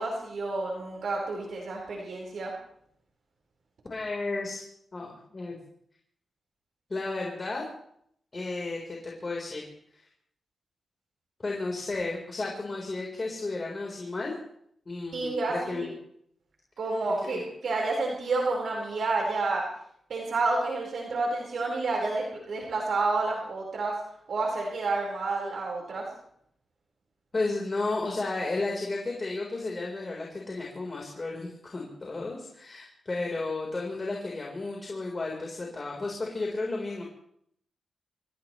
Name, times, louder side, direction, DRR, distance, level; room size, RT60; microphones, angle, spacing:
voice 1, 0.0-2.5 15.1-15.9 16.8-19.6 20.1-23.9 24.3-26.1, right 3 dB, 70° right, -2 dB, 4.5 m, -29 dB
voice 2, 3.9-4.6 4.9-5.5 6.9-7.7 8.3-9.6 9.9-10.0 11.4-14.3 14.9-15.9 17.2-17.4 27.3-37.0, left 3 dB, 35° left, -1 dB, 4.0 m, -33 dB
27.0 x 16.5 x 3.2 m, 0.68 s
wide cardioid pair, 105°, 0 cm